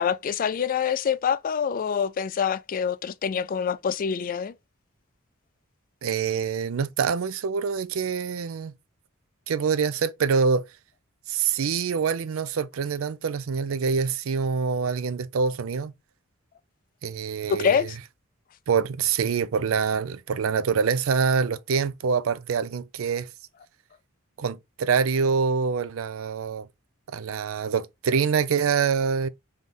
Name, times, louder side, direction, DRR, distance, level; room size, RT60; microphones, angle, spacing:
voice 1, 0.0-4.5 17.5-18.0, left 7 dB, 45° left, 0.3 m, -25 dB
voice 2, 6.0-8.7 9.5-10.6 11.3-15.9 17.0-17.9 18.7-23.3 24.4-26.7 27.1-29.3, right 6 dB, 85° right, 0.5 m, -25 dB
3.5 x 3.1 x 3.8 m
head